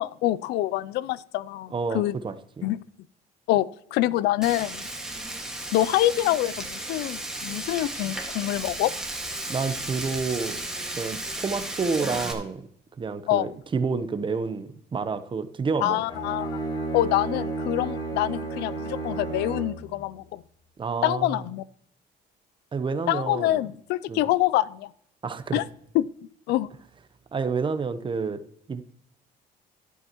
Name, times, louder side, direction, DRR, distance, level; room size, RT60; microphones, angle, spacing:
voice 1, 0.0-2.2 2.6-2.8 3.5-4.9 5.7-8.9 13.3-13.5 15.8-16.6 16.9-20.4 21.0-21.6 23.1-24.9 25.5-25.6 25.9-26.0 26.5-26.7, left 15 dB, 85° left, 20 dB, 0.4 m, -25 dB
voice 2, 1.7-2.7 9.5-10.6 10.9-12.7 13.0-16.0 20.8-21.4 22.7-23.6 24.1-24.3 25.2-25.6 27.3-28.4 28.7-28.8, right 5 dB, 30° right, 11 dB, 0.9 m, -29 dB
Frying (food), 4.4-12.3, right 1 dB, 5° right, 1.8 m, -34 dB
Bowed string instrument, 16.0-19.9, right 3 dB, 25° left, 3.8 m, -32 dB
12.0 x 11.0 x 3.0 m, 0.67 s
cardioid pair, 110°, 17 cm